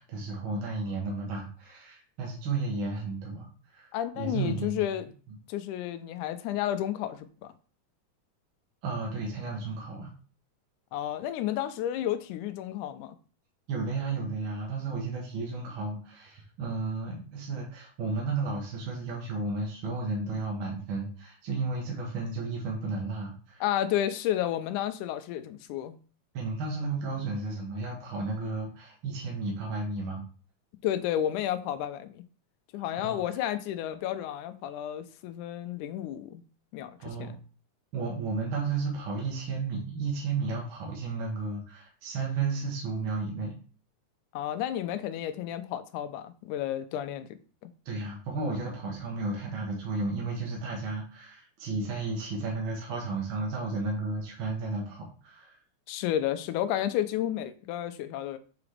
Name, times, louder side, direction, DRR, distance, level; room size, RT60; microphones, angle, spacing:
voice 1, 0.0-3.9 4.2-4.8 8.8-10.1 13.7-23.6 26.3-30.2 32.9-33.2 37.0-37.4 37.9-43.5 47.8-55.6, right 3 dB, 55° right, 1.6 m, -33 dB
voice 2, 3.9-5.1 5.5-7.5 10.9-13.2 23.6-26.0 30.8-32.2 32.7-36.4 36.7-37.4 44.3-47.7 55.9-58.4, left 11 dB, 85° left, 2.0 m, -32 dB
6.1 x 4.8 x 3.2 m
omnidirectional pair, 3.5 m